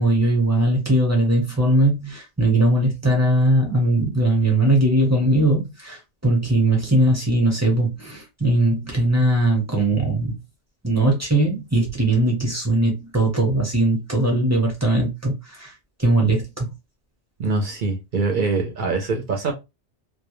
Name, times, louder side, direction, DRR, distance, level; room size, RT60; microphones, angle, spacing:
voice 1, 0.0-10.4 10.8-15.7 16.0-16.7, right 1 dB, 15° right, 0.7 m, -20 dB
voice 2, 17.4-19.5, right 3 dB, 55° right, 0.7 m, -23 dB
2.2 x 2.0 x 2.9 m
omnidirectional pair, 1.2 m